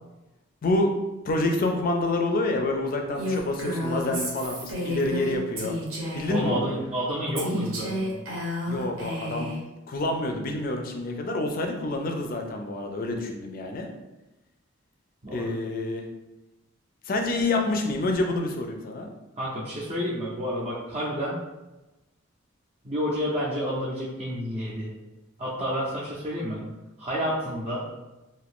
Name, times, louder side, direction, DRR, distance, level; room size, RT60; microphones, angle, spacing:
voice 1, 0.6-0.9 1.2-5.8 6.1-6.7 8.7-9.5 9.9-13.9 15.3-16.1 17.1-19.1, left 2 dB, 45° left, 3 dB, 0.4 m, -27 dB
Female speech woman speaking, 3.2-6.5 7.4-9.6, left 1 dB, 75° right, 0.9 m, -31 dB
voice 2, 6.3-8.1 15.2-15.5 19.4-21.4 22.8-24.9 25.4-26.6 27.0-27.9, equal, 30° right, -8 dB, 0.5 m, -29 dB
2.6 x 2.4 x 3.4 m, 1.0 s
head